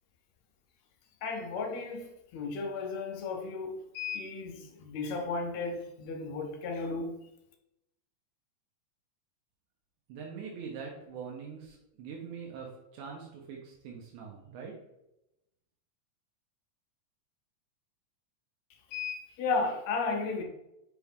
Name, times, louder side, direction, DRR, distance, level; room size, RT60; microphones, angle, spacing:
voice 1, 1.2-7.2 18.9-20.4, left 4 dB, 75° left, 1.9 m, -34 dB
voice 2, 10.1-14.8, right 6 dB, 85° right, 2.3 m, -43 dB
5.8 x 4.7 x 3.5 m
omnidirectional pair, 3.3 m